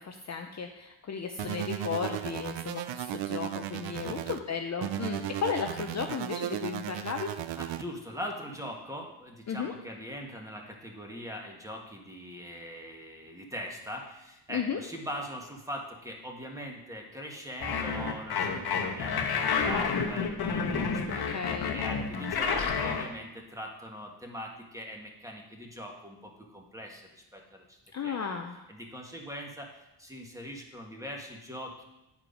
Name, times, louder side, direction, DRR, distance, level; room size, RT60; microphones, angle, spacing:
voice 1, 0.0-7.3 9.5-9.7 14.5-14.8 21.1-21.8 27.9-28.5, left 6 dB, 35° left, 4 dB, 0.6 m, -34 dB
sound 1, 1.4-4.4 4.8-7.8, right 12 dB, 70° right, 0.6 m, -35 dB
voice 2, 7.6-28.2 28.7-31.8, equal, 5° right, 0 dB, 1.4 m, -41 dB
sound 2, 17.6-23.1, left 5 dB, 55° left, 1.1 m, -29 dB
9.6 x 4.7 x 5.1 m, 0.93 s
cardioid pair, 105°, 46 cm